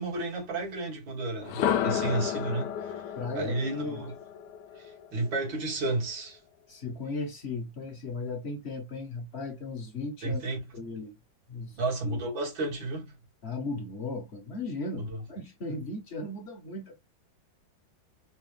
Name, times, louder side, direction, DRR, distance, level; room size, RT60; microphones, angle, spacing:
voice 1, 0.0-3.0 3.3-4.2 4.8-6.4 10.2-10.6 11.8-13.1 14.9-15.2, right 2 dB, 80° right, 2.6 m, -32 dB
sound 1, 1.4-5.4, left 9 dB, 70° left, 1.1 m, -32 dB
voice 2, 3.2-4.0 6.7-10.4 10.7-11.1 11.5-11.8 12.0-12.2 13.4-17.0, left 3 dB, 50° left, 0.8 m, -36 dB
4.7 x 2.3 x 3.2 m
omnidirectional pair, 2.1 m